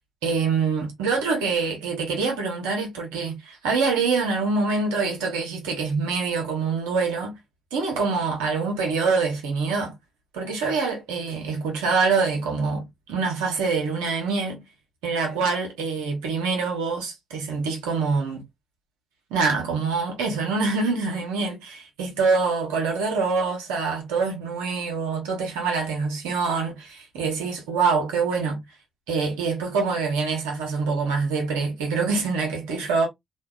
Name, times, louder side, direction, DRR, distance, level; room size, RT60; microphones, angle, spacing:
voice 1, 0.2-7.3 7.7-9.9 10.3-14.6 15.0-18.4 19.3-28.6 29.1-33.1, right 4 dB, 85° right, 0.8 m, -25 dB
2.6 x 2.2 x 2.2 m
hypercardioid pair, 45°, 0 cm